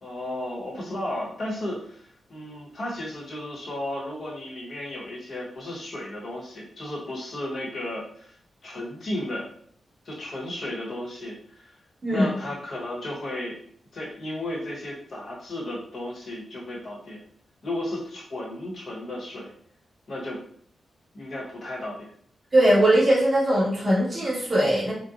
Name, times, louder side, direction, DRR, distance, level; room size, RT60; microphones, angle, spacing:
voice 1, 0.0-8.4 8.6-9.5 10.0-11.8 12.1-13.6 13.9-17.2 17.6-19.5 20.1-20.4 21.1-22.1, left 1 dB, 50° left, -5 dB, 1.0 m, -34 dB
voice 2, 22.5-24.9, right 1 dB, 25° right, -8 dB, 1.4 m, -20 dB
4.0 x 2.2 x 2.5 m, 0.62 s
wide cardioid pair, 175°, 0 cm